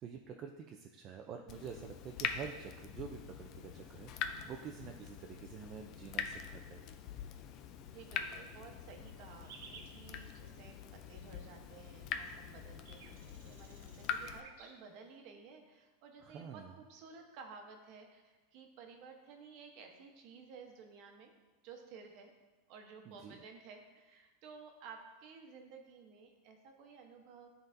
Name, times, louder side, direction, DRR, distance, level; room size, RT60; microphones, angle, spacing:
voice 1, 0.0-7.0 16.2-16.7 23.1-23.4, right 7 dB, 30° right, 3 dB, 0.4 m, -48 dB
Water tap faucet / Drip, 1.5-14.4, left 8 dB, 40° left, 0.4 m, -44 dB
voice 2, 7.9-21.3 21.6-22.3 22.7-27.5, right 5 dB, 50° right, 3 dB, 0.9 m, -54 dB
sound 1, 9.4-9.9 12.1-12.2 12.4-14.8, right 5 dB, 80° right, 0.9 m, -55 dB
11.0 x 3.9 x 2.6 m, 1.2 s
supercardioid pair, 155°, 0 cm